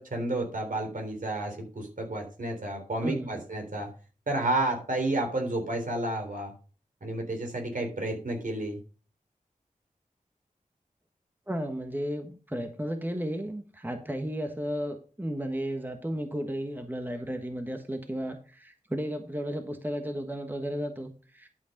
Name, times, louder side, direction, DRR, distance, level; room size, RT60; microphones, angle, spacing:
voice 1, 0.0-3.9 4.3-6.5 7.0-8.8, right 2 dB, 70° right, 3 dB, 3.3 m, -31 dB
voice 2, 3.0-3.3 11.5-21.5, equal, 15° right, 5 dB, 1.4 m, -34 dB
11.5 x 5.3 x 5.2 m, 0.37 s
wide cardioid pair, 55°, 14 cm